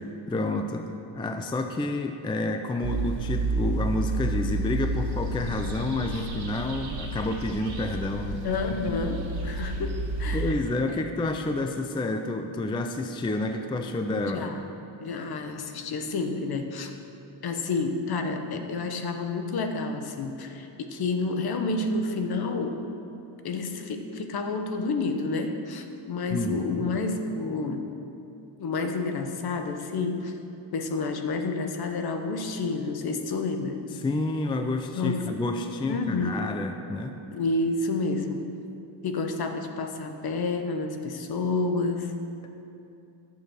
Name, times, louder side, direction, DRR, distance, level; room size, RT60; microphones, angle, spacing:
voice 1, 0.3-8.4 10.3-14.5 26.3-26.9 34.0-37.2, left 2 dB, 10° left, 5 dB, 0.4 m, -29 dB
sound 1, 2.8-10.5, right 2 dB, 75° right, 2.2 m, -30 dB
voice 2, 8.4-10.6 14.3-14.6 15.0-16.9 17.4-22.8 23.4-27.9 28.6-30.3 30.7-33.8 34.9-35.3 35.8-36.4 37.3-38.5 39.0-42.1, left 3 dB, 50° left, 6 dB, 1.0 m, -29 dB
11.0 x 6.8 x 6.4 m, 2.8 s
cardioid pair, 125°, 48 cm